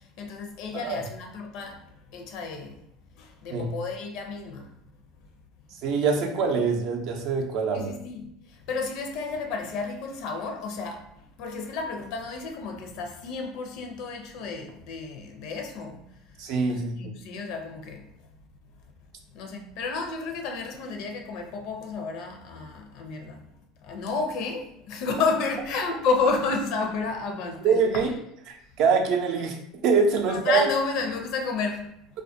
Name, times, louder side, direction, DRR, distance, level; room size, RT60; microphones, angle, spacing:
voice 1, 0.2-1.8 2.1-2.8 3.2-4.7 7.7-8.2 8.7-11.0 11.4-16.0 16.7-18.1 19.3-23.4 23.8-28.1 30.3-31.9, left 4 dB, 65° left, 0.5 m, -31 dB
voice 2, 5.7-7.9 16.4-17.1 27.6-28.1 28.5-29.6 29.8-30.7, right 5 dB, 65° right, 0.5 m, -24 dB
2.3 x 2.1 x 2.6 m
hypercardioid pair, 85°, 0 cm